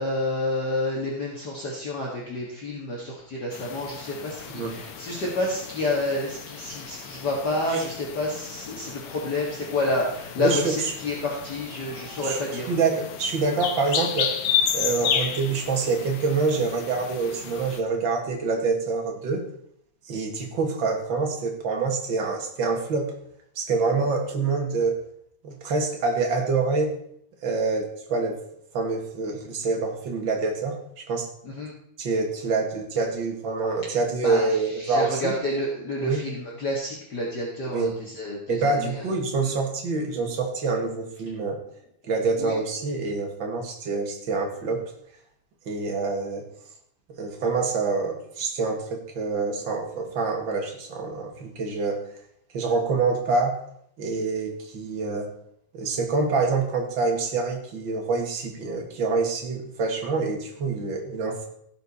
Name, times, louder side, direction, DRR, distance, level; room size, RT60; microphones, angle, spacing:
voice 1, 0.0-12.7 24.0-24.1 31.4-31.7 34.2-39.1 39.4-39.5 42.3-42.5, left 2 dB, 50° left, -3 dB, 1.2 m, -29 dB
sound 1, 3.5-17.8, left 8 dB, 85° left, 1.5 m, -32 dB
voice 2, 10.4-10.7 12.2-12.4 12.7-14.3 14.7-19.5 20.0-23.1 23.6-25.0 25.4-26.9 27.4-28.4 28.7-30.8 31.1-31.3 32.0-35.3 36.0-36.2 37.7-37.9 38.5-41.6 42.1-44.8 45.7-46.5 47.2-52.0 52.5-53.6 54.0-55.3 55.7-61.5, right 4 dB, 45° right, 2 dB, 1.7 m, -26 dB
16.5 x 7.0 x 4.2 m, 0.69 s
omnidirectional pair, 4.6 m